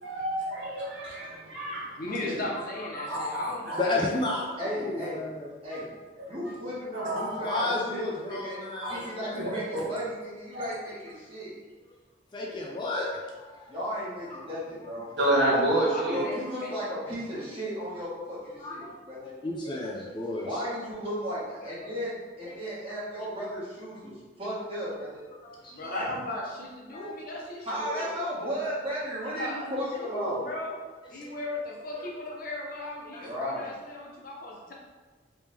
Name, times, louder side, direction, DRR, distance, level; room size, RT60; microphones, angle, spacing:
voice 1, 0.0-1.9 3.1-3.8 6.9-7.6 8.8-9.1 9.3-9.8 10.5-10.7 15.2-16.2, right 1 dB, 70° right, -6 dB, 1.2 m, -29 dB
voice 2, 2.0-4.0 15.5-16.3 16.6-16.8 25.7-28.1 29.2-30.7 31.1-34.7, left 1 dB, 45° left, -3 dB, 0.7 m, -37 dB
voice 3, 2.8-3.2 3.8-5.5 7.4-9.6 12.3-13.1 13.4-13.7 14.3-14.4 14.8-15.4 18.6-18.9 19.2-20.6 21.6-21.7 22.5-22.6 25.3-25.8 26.9-27.1 28.6-28.7 31.1-31.3 32.0-32.1 33.1-33.2, left 2 dB, 25° left, -2 dB, 0.4 m, -33 dB
voice 4, 4.6-5.2 5.6-5.9 6.3-8.6 8.9-11.5 13.7-15.1 16.1-19.3 20.4-25.2 25.8-26.0 27.6-30.4 33.2-33.7, equal, 30° right, -9 dB, 1.4 m, -35 dB
3.4 x 3.0 x 3.3 m, 1.4 s
head